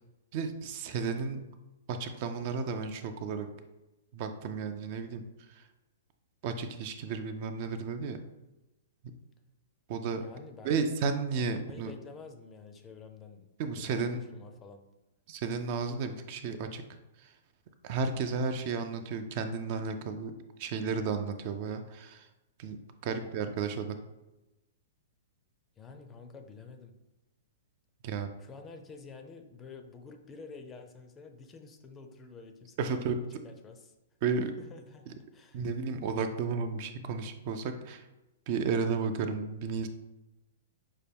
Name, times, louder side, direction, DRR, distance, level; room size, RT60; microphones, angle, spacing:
voice 1, 0.3-1.4 1.9-3.5 4.1-5.7 6.4-8.2 9.9-10.2 10.6-11.9 13.6-14.2 15.3-16.8 17.2-17.3 17.8-20.3 20.6-22.3 22.6-22.8 23.0-24.0 28.0-28.3 32.8-33.2 34.2-34.5 35.1-35.2 35.5-38.0 38.5-39.9, right 5 dB, 45° right, 8 dB, 0.4 m, -33 dB
voice 2, 10.2-10.8 11.5-13.5 13.8-14.8 23.0-23.4 25.8-26.9 28.4-33.9 34.6-35.6, left 4 dB, 20° left, 5 dB, 0.4 m, -49 dB
5.5 x 2.2 x 3.4 m, 1.0 s
hypercardioid pair, 145°, 0 cm